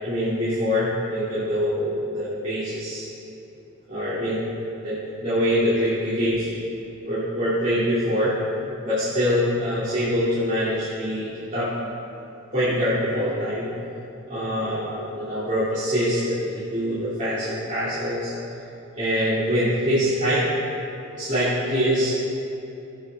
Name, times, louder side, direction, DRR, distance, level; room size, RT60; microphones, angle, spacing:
voice 1, 0.0-3.1 3.9-4.4 4.8-6.6 7.0-8.4 8.8-11.7 12.5-13.7 14.3-18.3 19.0-20.5 21.1-22.1, equal, 40° right, -12 dB, 2.4 m, -24 dB
16.5 x 7.8 x 3.5 m, 2.9 s
head